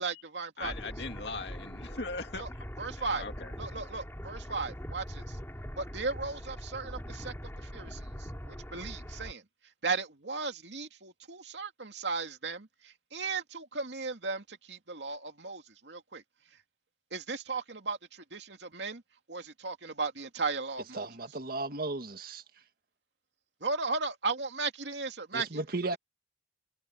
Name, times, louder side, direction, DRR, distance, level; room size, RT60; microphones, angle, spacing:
voice 1, 0.0-0.7 2.4-2.5 2.8-3.3 3.6-5.4 5.8-9.4 9.8-16.2 17.1-19.0 19.3-21.1 23.6-25.5, right 4 dB, 75° right, 2.6 m, -36 dB
voice 2, 0.6-2.5 3.0-3.5, left 3 dB, 70° left, 2.5 m, -39 dB
sound 1, 0.6-9.3, equal, 15° left, 5.9 m, -42 dB
voice 3, 20.9-22.4 25.3-26.0, right 2 dB, 55° right, 1.8 m, -35 dB
head